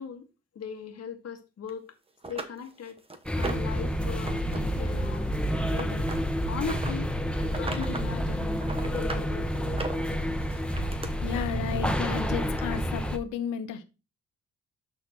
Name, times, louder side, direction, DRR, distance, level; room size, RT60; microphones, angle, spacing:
voice 1, 0.0-1.9 2.3-3.0 3.4-6.1 6.5-7.1 7.4-8.6 8.8-9.8, left 6 dB, 55° left, 1.8 m, -39 dB
sound 1, 1.7-1.8 2.2-3.8 4.2-4.6 4.8-6.9 7.4-8.1 8.4-9.3 9.7-11.1 12.0-12.1 12.6-12.7, right 3 dB, 20° right, 1.1 m, -38 dB
sound 2, 3.3-13.2, equal, 5° left, 0.9 m, -29 dB
voice 2, 11.2-13.8, left 7 dB, 85° left, 1.0 m, -33 dB
12.5 x 4.1 x 3.0 m
cardioid pair, 90°, 30 cm